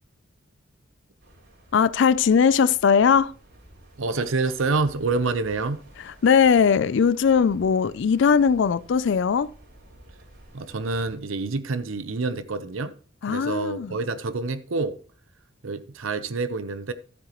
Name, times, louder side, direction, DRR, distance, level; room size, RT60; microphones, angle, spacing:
sound 1, 1.2-11.2, right 1 dB, 60° right, 4.1 m, -51 dB
voice 1, 1.7-3.3 6.0-9.5 13.2-14.0, left 6 dB, 65° left, 0.4 m, -19 dB
voice 2, 4.0-5.8 10.5-13.0 13.3-15.0 15.6-16.9, right 3 dB, 85° right, 0.8 m, -27 dB
15.0 x 7.7 x 3.0 m
head